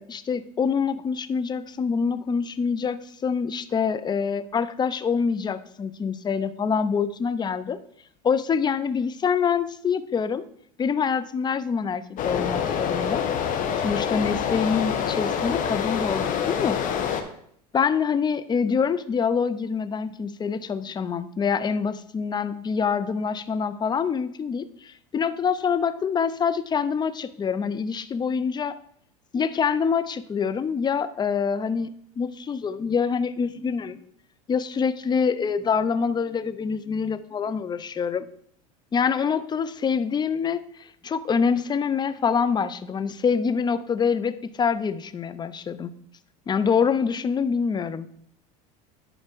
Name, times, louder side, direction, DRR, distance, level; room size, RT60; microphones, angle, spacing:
voice 1, 0.0-7.8 8.2-10.4 10.8-13.2 13.8-16.8 17.7-28.8 29.3-31.9 32.2-34.0 34.5-38.3 38.9-40.6 41.0-45.9 46.5-48.1, left 6 dB, 20° left, 13 dB, 0.6 m, -25 dB
sound 1, 12.2-17.2, left 7 dB, 40° left, 1.2 m, -26 dB
10.5 x 4.4 x 4.6 m, 0.66 s
hypercardioid pair, 95°, 20 cm